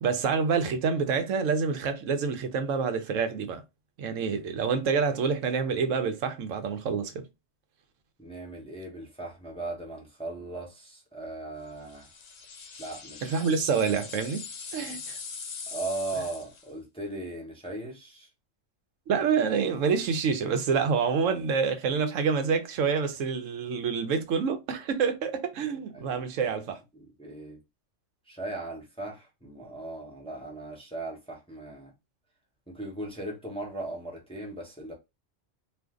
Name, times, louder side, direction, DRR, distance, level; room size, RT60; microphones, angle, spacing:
voice 1, 0.0-3.6 4.0-7.3 13.2-14.5 14.7-15.2 19.1-26.8, right 5 dB, 85° right, 1.0 m, -27 dB
voice 2, 8.2-12.1 12.8-13.3 15.7-18.3 25.9-26.5 26.9-27.6 28.3-31.9 32.7-34.9, right 2 dB, 5° left, 0.7 m, -38 dB
sound 1, 11.9-16.7, left 5 dB, 50° left, 0.5 m, -42 dB
2.6 x 2.5 x 3.5 m
omnidirectional pair, 1.3 m